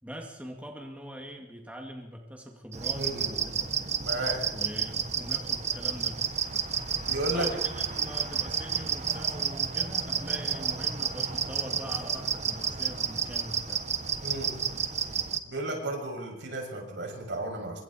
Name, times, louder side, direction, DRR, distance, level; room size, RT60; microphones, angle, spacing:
voice 1, 0.0-3.7 4.5-6.2 7.3-13.8, equal, 10° right, 1 dB, 2.2 m, -42 dB
sound 1, 2.7-15.4, right 7 dB, 40° right, 1.2 m, -31 dB
voice 2, 3.0-3.3 4.0-4.4 7.0-7.6 7.9-8.1 14.2-14.6 15.5-17.8, right 1 dB, 70° right, 0 dB, 6.9 m, -33 dB
27.0 x 24.5 x 4.4 m, 1.0 s
head